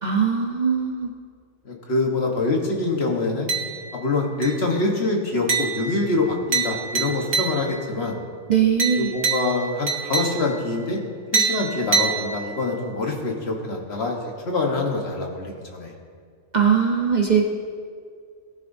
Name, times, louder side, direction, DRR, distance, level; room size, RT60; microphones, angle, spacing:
voice 1, 0.0-1.1 8.5-9.1 16.5-17.4, right 7 dB, 40° right, -1 dB, 0.8 m, -20 dB
voice 2, 1.6-3.5 3.9-8.2 9.0-11.0 11.3-15.9, left 3 dB, 50° left, 1 dB, 1.4 m, -25 dB
sound 1, 3.5-4.1 4.4-4.8 5.5-7.9 8.8-10.7 11.3-12.8, right 5 dB, 75° right, 1.4 m, -26 dB
18.5 x 9.1 x 2.7 m, 2.1 s
omnidirectional pair, 1.4 m